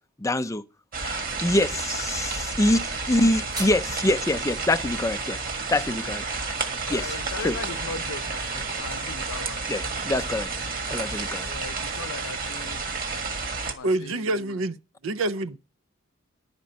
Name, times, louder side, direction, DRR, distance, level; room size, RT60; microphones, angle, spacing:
voice 1, 0.2-0.6 1.0-5.4 5.7-6.2 6.9-7.1 7.4-7.6 9.7-10.5 10.9-11.5, left 1 dB, 15° left, 0.5 m, -25 dB
sound 1, 0.9-13.7, right 4 dB, 45° right, 1.7 m, -31 dB
sound 2, 3.1-4.1, right 3 dB, 20° right, 1.0 m, -39 dB
voice 2, 6.8-9.9 11.5-12.8 13.7-14.6, left 4 dB, 80° left, 0.6 m, -39 dB
voice 3, 13.8-14.8 15.0-15.6, right 2 dB, 70° right, 0.6 m, -26 dB
11.0 x 5.2 x 8.6 m
head